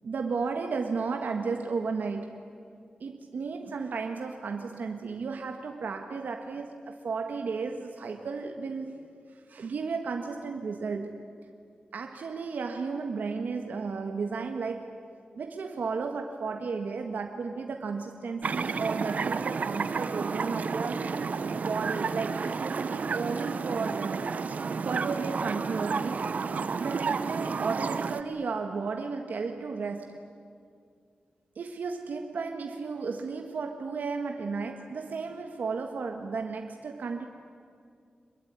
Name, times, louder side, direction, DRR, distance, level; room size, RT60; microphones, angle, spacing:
voice 1, 0.0-2.4 3.0-9.1 9.3-11.3 11.9-15.0 15.3-21.1 21.6-24.3 24.8-26.4 26.8-30.2 31.5-37.3, right 4 dB, 85° right, 4 dB, 1.6 m, -34 dB
sound 1, 18.4-28.2, right 5 dB, 65° right, 0.9 m, -31 dB
26.5 x 22.0 x 9.6 m, 2.2 s
wide cardioid pair, 140°, 3 cm